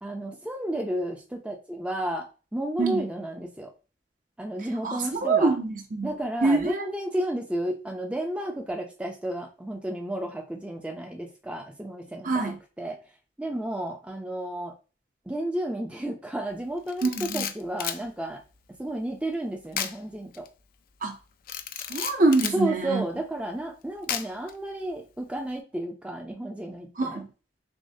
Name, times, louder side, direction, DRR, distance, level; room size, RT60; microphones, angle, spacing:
voice 1, 0.0-3.7 4.4-5.5 6.0-13.0 13.4-14.7 15.3-18.4 18.8-20.5 22.5-27.2, right 1 dB, 5° right, 0.5 m, -32 dB
voice 2, 4.8-6.1 6.4-6.9 12.2-12.6 17.0-17.5 21.0-21.2 21.9-23.0 27.0-27.3, right 3 dB, 45° right, 0.7 m, -25 dB
Camera, 16.9-18.0 19.7-20.0 20.3-20.5 21.5-22.6 24.1-24.5, left 9 dB, 50° left, 0.4 m, -32 dB
6.1 x 2.2 x 2.7 m
head